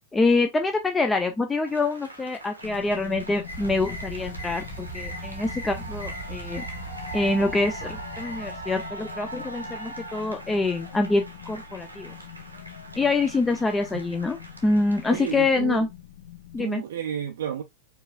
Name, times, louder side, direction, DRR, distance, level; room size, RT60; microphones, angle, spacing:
voice 1, 0.1-6.6 7.1-12.1 13.0-15.9 16.5-16.8, left 3 dB, 15° left, 0.3 m, -25 dB
sound 1, 1.6-15.6, right 2 dB, 85° right, 0.7 m, -42 dB
sound 2, 2.6-16.6, left 12 dB, 60° left, 0.6 m, -44 dB
sound 3, 3.5-8.9, right 2 dB, 85° left, 1.1 m, -38 dB
voice 2, 15.1-15.8 16.6-17.6, right 9 dB, 60° right, 0.3 m, -31 dB
4.6 x 2.3 x 2.4 m
figure-of-eight pair, 90°, 0 cm